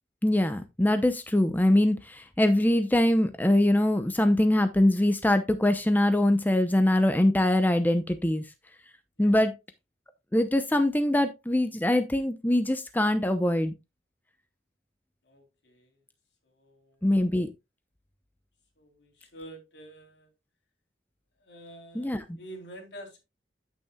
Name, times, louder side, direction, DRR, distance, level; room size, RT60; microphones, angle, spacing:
voice 1, 0.2-8.4 9.2-9.5 10.3-13.7 17.0-17.5 21.9-22.2, left 1 dB, 10° left, 0.7 m, -23 dB
voice 2, 15.2-16.0 16.4-17.1 18.8-20.3 21.4-23.2, right 1 dB, 75° left, 3.4 m, -48 dB
9.2 x 8.6 x 2.3 m
head